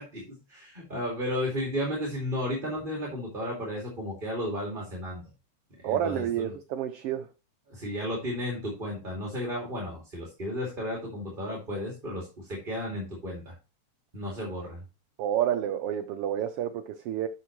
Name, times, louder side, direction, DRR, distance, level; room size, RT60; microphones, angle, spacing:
voice 1, 0.0-5.2 5.8-6.5 7.7-13.5 14.1-14.8, equal, 20° right, 2.2 m, -33 dB
voice 2, 5.8-7.3 15.2-17.3, right 10 dB, 90° right, 1.3 m, -29 dB
12.0 x 5.9 x 3.1 m
omnidirectional pair, 3.3 m